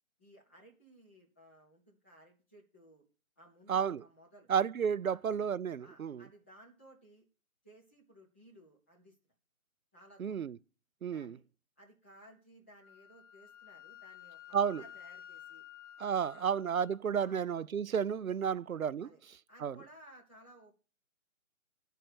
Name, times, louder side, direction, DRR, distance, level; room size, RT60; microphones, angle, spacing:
voice 1, 0.2-3.0 3.4-4.5 5.0-5.2 5.8-7.3 7.6-9.2 9.9-10.4 11.1-11.4 11.8-15.6 16.3-16.5 17.2-17.4 18.4-18.6 19.0-19.2 19.5-20.7, right 1 dB, 10° left, 0.8 m, -59 dB
voice 2, 3.7-4.0 4.5-6.2 10.2-10.6 11.0-11.4 14.5-14.8 16.0-19.1 19.6-19.7, right 7 dB, 80° right, 0.5 m, -32 dB
Wind instrument woodwind instrument, 12.8-17.0, left 10 dB, 60° left, 0.7 m, -52 dB
11.0 x 4.5 x 8.0 m
figure-of-eight pair, 145°, 41 cm